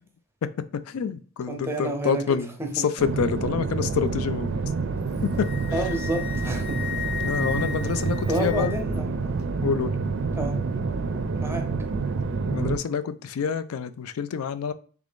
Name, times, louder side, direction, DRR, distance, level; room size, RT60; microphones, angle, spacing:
voice 1, 0.4-4.5 5.2-5.5 7.2-8.7 9.6-9.9 12.5-14.7, left 7 dB, 85° left, 0.4 m, -27 dB
voice 2, 1.5-2.9 5.7-6.8 8.3-9.1 10.3-10.6 11.4-11.7, right 1 dB, 10° right, 0.6 m, -29 dB
sound 1, 3.0-12.8, right 4 dB, 60° right, 0.4 m, -28 dB
Wind instrument woodwind instrument, 5.0-9.0, left 7 dB, 50° left, 0.8 m, -35 dB
3.4 x 2.5 x 3.5 m
head